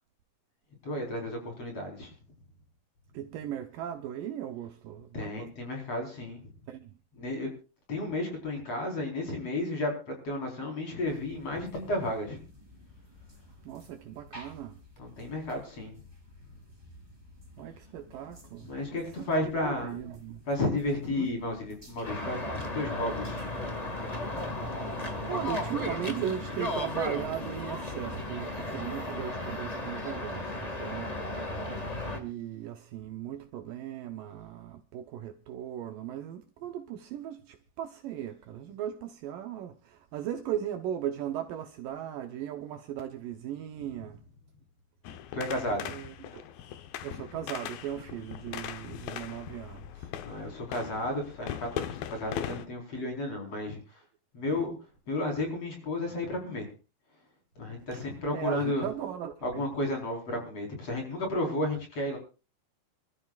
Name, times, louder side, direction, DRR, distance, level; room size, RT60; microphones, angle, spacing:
voice 1, 0.8-2.1 5.1-6.4 7.2-7.5 7.9-12.4 15.0-15.9 18.6-20.0 20.5-23.4 45.3-45.9 50.2-53.8 54.3-54.7 55.1-56.7 57.6-58.9 59.4-62.2, left 1 dB, 40° left, 5.4 m, -32 dB
voice 2, 3.1-5.5 6.7-6.9 13.6-14.8 17.6-19.0 19.3-20.4 21.1-21.3 25.3-31.2 32.1-44.2 45.6-46.4 47.0-50.1 54.5-54.6 57.9-58.1 58.3-59.6, right 10 dB, 75° right, 2.6 m, -37 dB
sound 1, 11.1-29.6, equal, 5° right, 4.2 m, -51 dB
sound 2, 22.0-32.2, left 1 dB, 20° left, 1.0 m, -35 dB
sound 3, 45.0-52.7, left 10 dB, 80° left, 2.8 m, -40 dB
27.0 x 13.0 x 2.4 m
omnidirectional pair, 4.2 m